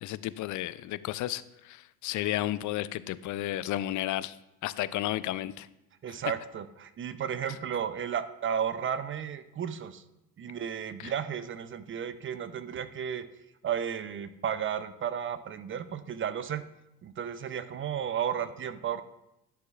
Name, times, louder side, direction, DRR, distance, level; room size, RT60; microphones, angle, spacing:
voice 1, 0.0-4.4 4.6-5.7 11.0-11.1, left 14 dB, 45° left, 17 dB, 0.4 m, -32 dB
voice 2, 6.0-10.0 10.4-13.2 13.6-16.6 17.0-19.0, right 8 dB, 30° right, 13 dB, 0.5 m, -33 dB
11.5 x 6.7 x 2.4 m, 0.88 s
hypercardioid pair, 70°, 45 cm